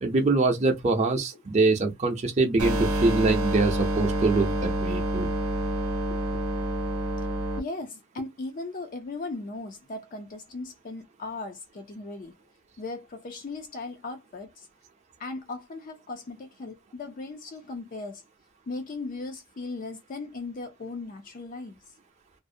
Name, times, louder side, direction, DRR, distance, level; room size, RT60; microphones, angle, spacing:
voice 1, 0.0-5.3, right 3 dB, 30° right, 0.5 m, -24 dB
sound 1, 2.6-7.6, right 1 dB, 80° right, 0.7 m, -27 dB
voice 2, 7.2-12.3 12.8-14.7 15.2-18.2 18.7-21.8, left 3 dB, 40° left, 0.4 m, -38 dB
2.5 x 2.0 x 2.6 m
head